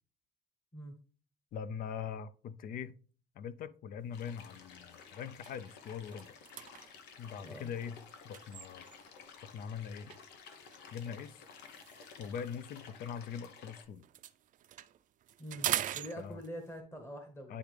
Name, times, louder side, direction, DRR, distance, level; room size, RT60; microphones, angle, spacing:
voice 1, 1.5-3.0 3.4-6.4 7.2-8.0 8.2-8.8 9.4-10.2 10.9-11.4 12.2-14.1 16.2-16.4 17.5-17.6, left 7 dB, 55° left, 0.5 m, -42 dB
sound 1, 4.1-13.9, left 6 dB, 85° left, 1.0 m, -54 dB
sound 2, 4.1-4.4 4.8-4.9 5.3-9.2 10.1-13.7 13.9-16.8, right 11 dB, 50° right, 0.5 m, -43 dB
voice 2, 15.9-17.6, equal, 15° left, 1.0 m, -45 dB
10.0 x 3.5 x 3.3 m
cardioid pair, 110°, 17 cm